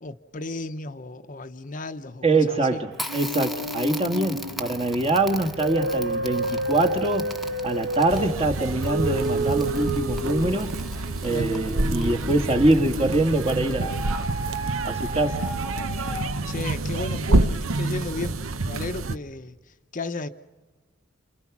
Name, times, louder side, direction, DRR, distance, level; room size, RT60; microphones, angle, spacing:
voice 1, 0.0-2.8 11.3-11.5 16.5-18.4 18.6-20.3, left 2 dB, 40° left, 0.8 m, -34 dB
voice 2, 2.2-7.3 7.6-10.7 11.2-14.0 14.8-15.5, right 2 dB, 30° right, 1.5 m, -24 dB
Crackle, 2.9-14.5, left 1 dB, ahead, 1.0 m, -41 dB
sound 1, 3.1-13.3 13.8-16.6, right 1 dB, 65° right, 3.1 m, -31 dB
sound 2, 8.1-19.2, right 2 dB, 90° right, 0.9 m, -28 dB
30.0 x 28.5 x 6.0 m
head